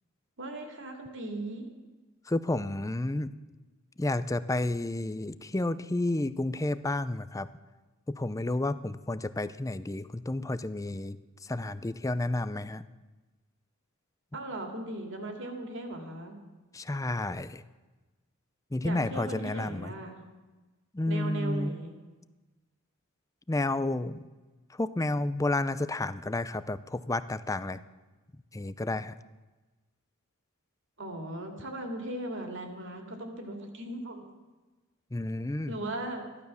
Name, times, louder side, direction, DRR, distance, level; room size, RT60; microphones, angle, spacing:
voice 1, 0.4-1.7 14.3-16.4 18.8-20.3 21.1-21.9 31.0-34.2 35.7-36.3, right 1 dB, 55° right, 3 dB, 2.6 m, -38 dB
voice 2, 2.3-3.3 4.0-7.5 8.1-12.8 16.7-17.6 18.7-19.9 20.9-21.7 23.5-24.2 24.7-27.8 28.5-29.1 35.1-35.8, left 2 dB, 15° left, 14 dB, 0.5 m, -31 dB
14.5 x 12.0 x 6.9 m, 1.2 s
head